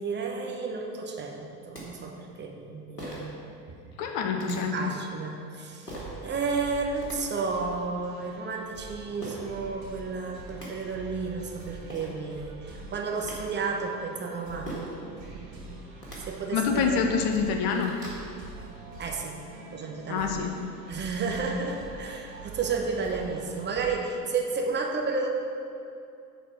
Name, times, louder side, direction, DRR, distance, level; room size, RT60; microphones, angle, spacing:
voice 1, 0.0-3.3 3.7-3.8 4.4-6.0 6.2-14.7 15.0-15.8 16.2-17.0 19.0-19.4 19.7-20.3 20.9-25.3, right 4 dB, 25° right, 1 dB, 0.9 m, -32 dB
sound 1, 1.7-1.8 3.0-3.3 4.4-4.6 5.9-6.1 6.8-7.2 9.2-9.4 10.2-10.3 10.5-10.7 11.6-11.7 11.9-12.1 12.9-13.4 14.7-15.0 15.9-16.2 16.8-16.9 17.3-18.2, equal, 85° left, 1.9 m, -40 dB
voice 2, 4.0-4.8 16.5-17.9 20.1-20.7, left 6 dB, 45° left, 4 dB, 0.9 m, -27 dB
sound 2, 5.8-24.0, right 3 dB, 65° right, 2.2 m, -45 dB
10.5 x 4.2 x 5.9 m, 2.6 s
figure-of-eight pair, 75°, 47 cm